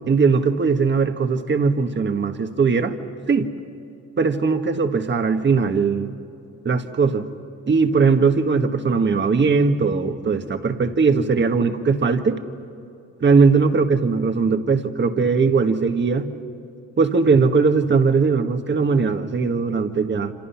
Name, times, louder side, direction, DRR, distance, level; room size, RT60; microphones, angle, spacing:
voice 1, 0.1-3.0 3.3-3.5 4.2-6.1 6.6-7.3 7.7-12.4 13.2-16.3 17.0-20.3, right 4 dB, 40° right, 7 dB, 1.7 m, -19 dB
27.0 x 26.5 x 5.9 m, 2.7 s
cardioid pair, 90°, 30 cm